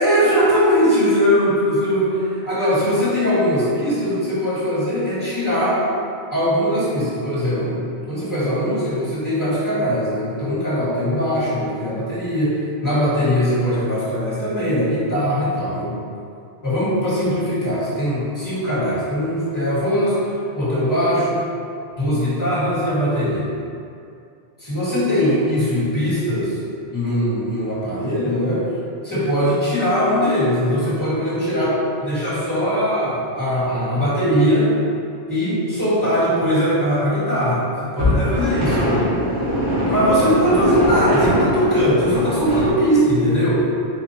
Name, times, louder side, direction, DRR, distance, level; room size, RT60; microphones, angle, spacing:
voice 1, 0.0-5.8 6.3-15.9 16.6-21.4 22.0-23.5 24.6-26.6 26.9-28.6 29.0-34.7 35.3-38.9 39.8-43.6, equal, 15° left, -10 dB, 1.6 m, -20 dB
sound 1, 38.0-42.7, equal, 75° right, 1.6 m, -21 dB
4.1 x 2.5 x 4.3 m, 2.5 s
omnidirectional pair, 1.1 m